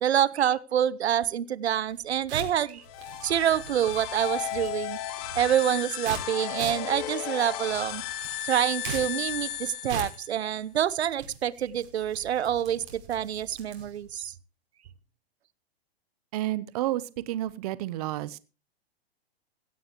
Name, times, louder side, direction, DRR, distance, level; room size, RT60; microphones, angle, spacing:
voice 1, 0.0-2.8 3.2-5.0 5.3-8.0 8.4-14.3, right 10 dB, 85° right, 20 dB, 1.0 m, -27 dB
sound 1, 1.8-14.1, right 5 dB, 60° right, 6.1 m, -42 dB
sound 2, 2.8-10.5, left 12 dB, 35° left, 1.6 m, -35 dB
voice 2, 16.3-18.4, right 15 dB, 40° right, 18 dB, 0.8 m, -30 dB
16.5 x 16.0 x 3.0 m, 0.31 s
hypercardioid pair, 160°, 32 cm